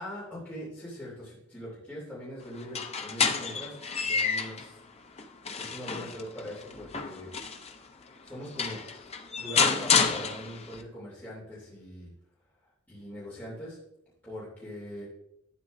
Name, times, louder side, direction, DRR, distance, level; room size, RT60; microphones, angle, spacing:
voice 1, 0.0-4.8 5.6-7.3 8.2-8.8 9.4-12.1 12.9-13.8 14.2-15.1, equal, 10° left, -9 dB, 3.1 m, -41 dB
sound 1, 2.6-4.7 5.2-7.7 8.3-8.4 8.6-10.8, left 5 dB, 30° left, 0.6 m, -29 dB
11.5 x 8.9 x 2.7 m, 0.84 s
head